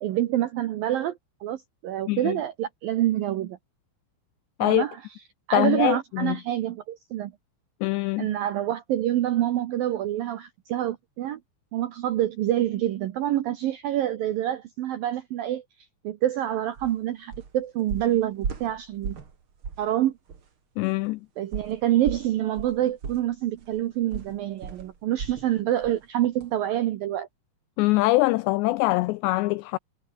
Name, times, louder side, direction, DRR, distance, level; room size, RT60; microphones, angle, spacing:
voice 1, 0.0-3.6 4.6-5.0 5.5-7.3 8.2-11.4 11.7-15.6 16.0-19.2 19.8-20.1 21.4-27.3, right 12 dB, 80° right, 2.1 m, -27 dB
voice 2, 5.5-6.4 7.8-8.3 20.8-21.2 27.8-29.8, left 20 dB, 90° left, 2.5 m, -23 dB
sound 1, 16.8-16.9 17.3-17.6 17.9-19.4 19.6-19.9 20.3-20.4 21.5-25.5 25.8-26.0 26.4-26.5, right 6 dB, 35° right, 2.4 m, -36 dB
omnidirectional pair, 5.7 m